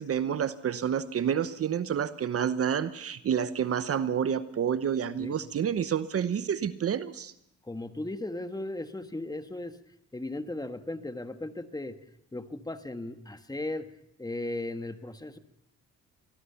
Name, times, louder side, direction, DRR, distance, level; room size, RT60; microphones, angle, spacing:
voice 1, 0.0-7.3, right 8 dB, 50° right, 14 dB, 1.0 m, -29 dB
voice 2, 7.6-9.8 10.1-12.0 12.3-13.9 14.2-15.4, left 2 dB, 15° left, 9 dB, 1.4 m, -36 dB
24.0 x 19.0 x 5.8 m, 0.75 s
cardioid pair, 90°, 30 cm